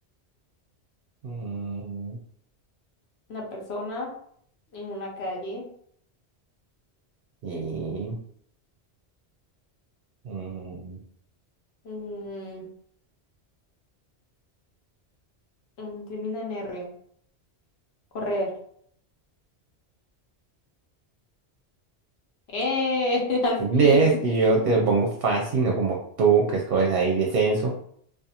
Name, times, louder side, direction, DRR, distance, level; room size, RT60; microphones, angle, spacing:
voice 1, 1.2-2.2 7.4-8.2 10.2-11.0 23.6-27.7, right 4 dB, 65° right, 0 dB, 0.7 m, -23 dB
voice 2, 3.3-4.1 4.7-5.6 11.9-12.6 15.8-16.9 18.1-18.5 22.5-24.2, left 2 dB, 75° left, 0 dB, 1.0 m, -29 dB
2.4 x 2.4 x 2.7 m, 0.64 s
omnidirectional pair, 1.1 m